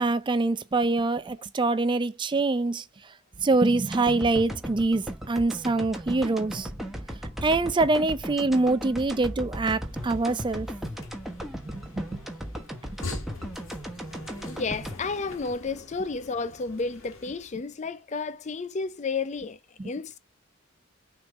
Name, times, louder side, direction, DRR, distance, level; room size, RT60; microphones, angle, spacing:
voice 1, 0.0-2.8 3.4-6.7 7.4-10.7 11.7-12.1 19.8-19.9, right 3 dB, 25° right, 0.4 m, -25 dB
sound 1, 3.9-16.1 16.5-16.6, equal, ahead, 1.2 m, -37 dB
sound 2, 9.7-17.6, left 3 dB, 70° left, 1.7 m, -44 dB
voice 2, 14.4-20.2, left 4 dB, 35° left, 0.5 m, -32 dB
6.3 x 3.7 x 5.1 m
head